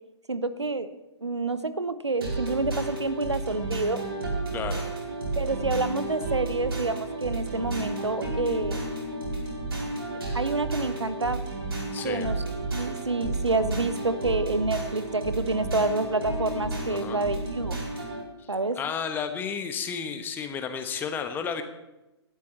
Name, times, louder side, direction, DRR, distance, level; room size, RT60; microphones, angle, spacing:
voice 1, 0.3-0.9 1.2-4.0 5.4-8.9 10.3-11.4 12.0-12.4 12.7-17.8 18.5-18.8, right 2 dB, 75° right, 13 dB, 1.1 m, -28 dB
sound 1, 2.2-18.2, right 2 dB, 60° right, 5.3 m, -32 dB
voice 2, 4.5-4.8 11.9-12.2 16.9-17.2 18.4-21.6, left 6 dB, 15° left, 8 dB, 1.2 m, -32 dB
19.5 x 12.5 x 4.4 m, 0.99 s
figure-of-eight pair, 120°, 14 cm